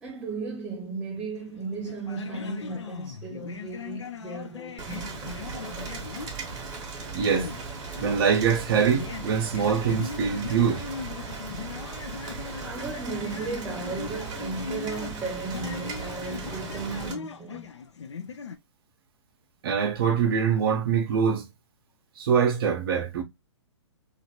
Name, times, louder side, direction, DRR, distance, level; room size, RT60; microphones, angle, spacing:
voice 1, 0.0-6.0 12.3-12.4 12.6-17.7, right 4 dB, 5° right, 0.4 m, -36 dB
sound 1, 1.4-18.6, left 6 dB, 65° left, 0.6 m, -39 dB
Rain, 4.8-17.1, right 4 dB, 25° right, 0.9 m, -37 dB
voice 2, 7.1-7.5 8.0-10.9 19.6-21.5 22.2-23.2, right 7 dB, 50° right, 0.7 m, -24 dB
2.9 x 2.5 x 2.7 m
figure-of-eight pair, 125°, 16 cm